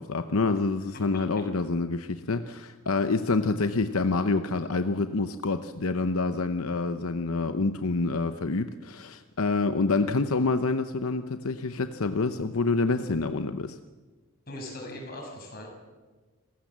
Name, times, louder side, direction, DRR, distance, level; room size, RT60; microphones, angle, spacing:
voice 1, 0.0-13.8, left 3 dB, 85° left, 9 dB, 0.8 m, -27 dB
voice 2, 14.5-15.7, left 1 dB, 45° left, 1 dB, 6.7 m, -40 dB
28.5 x 15.5 x 7.4 m, 1.3 s
head